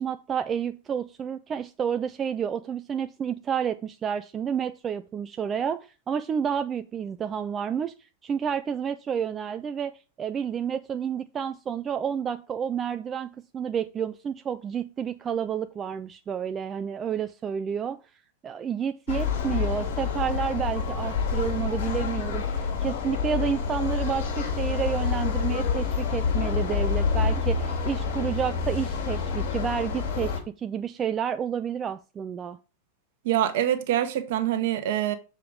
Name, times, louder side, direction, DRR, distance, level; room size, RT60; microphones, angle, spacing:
voice 1, 0.0-9.9 10.2-18.0 18.4-32.6, right 7 dB, 25° right, 0.3 m, -30 dB
sound 1, 19.1-30.4, left 5 dB, 55° left, 3.0 m, -27 dB
voice 2, 33.2-35.1, right 11 dB, 55° right, 1.0 m, -25 dB
6.9 x 4.9 x 4.9 m
figure-of-eight pair, 90°, 0 cm